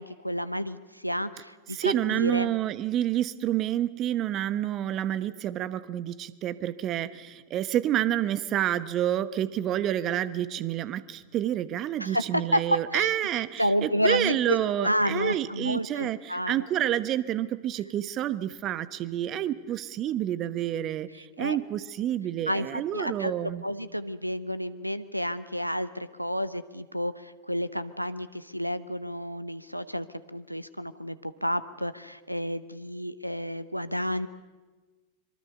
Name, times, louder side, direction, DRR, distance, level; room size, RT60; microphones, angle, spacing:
voice 1, 0.0-2.5 12.0-12.6 12.9-13.1 13.6-16.6 21.4-21.6 22.5-23.3 23.6-34.3, equal, 90° right, 16 dB, 0.9 m, -30 dB
voice 2, 1.7-23.6, right 12 dB, 35° right, 16 dB, 1.1 m, -29 dB
25.0 x 23.5 x 6.8 m, 1.3 s
figure-of-eight pair, 90°, 0 cm